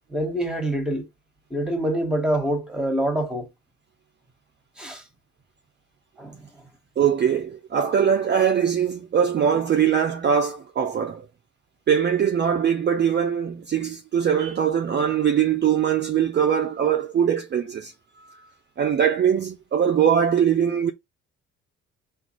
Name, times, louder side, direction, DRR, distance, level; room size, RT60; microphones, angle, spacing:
voice 1, 0.1-1.1 1.5-3.5 4.8-5.0 6.2-6.5, right 1 dB, 5° right, 1.2 m, -25 dB
voice 2, 7.0-11.3 11.9-17.9 18.2-18.4 18.8-20.9, right 8 dB, 35° right, 0.5 m, -22 dB
3.8 x 2.6 x 3.0 m
cardioid pair, 90°, 30 cm